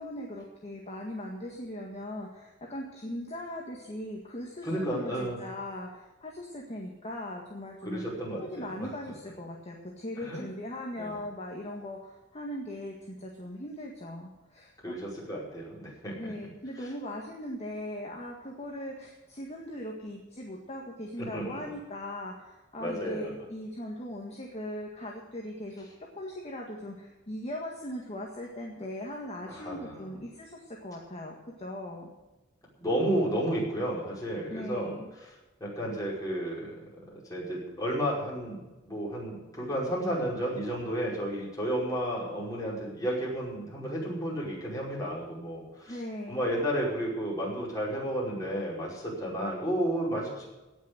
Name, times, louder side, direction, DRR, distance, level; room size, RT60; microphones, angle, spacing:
voice 1, 0.0-8.0 8.4-14.9 16.2-25.9 26.1-32.1 34.5-35.1 45.9-46.5, left 1 dB, 35° left, -1 dB, 1.8 m, -39 dB
voice 2, 4.6-5.4 7.8-8.9 10.2-10.4 11.0-11.2 14.8-16.3 16.8-16.9 21.2-21.6 22.8-23.3 29.5-30.1 32.8-34.9 35.2-35.3 35.6-36.8 37.1-46.0 46.3-50.4, equal, 20° left, -5 dB, 5.3 m, -32 dB
17.5 x 6.4 x 8.1 m, 1.1 s
head